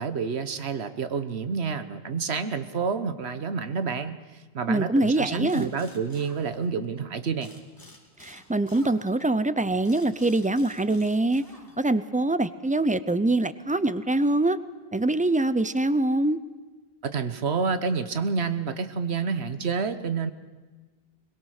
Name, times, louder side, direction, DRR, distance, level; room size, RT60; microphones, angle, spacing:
voice 1, 0.0-4.2 4.5-7.5 17.1-20.3, right 5 dB, 70° right, 11 dB, 1.4 m, -28 dB
voice 2, 4.7-5.7 8.2-11.4 11.8-14.6 14.9-16.4, right 2 dB, 15° right, 13 dB, 0.3 m, -24 dB
sound 1, 5.4-7.0 7.4-12.1, left 1 dB, 20° left, 2.5 m, -51 dB
22.0 x 21.5 x 6.6 m, 1.3 s
omnidirectional pair, 1.1 m